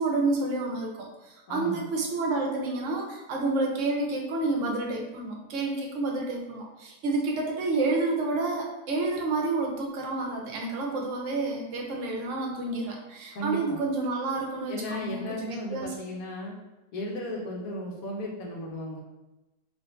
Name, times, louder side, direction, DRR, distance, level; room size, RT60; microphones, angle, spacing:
voice 1, 0.0-15.9, right 3 dB, 60° right, 0 dB, 0.9 m, -29 dB
voice 2, 1.5-1.9 13.3-13.8 14.7-16.5 16.9-19.0, equal, 65° left, -1 dB, 1.1 m, -35 dB
3.7 x 2.5 x 2.5 m, 1.0 s
omnidirectional pair, 1.7 m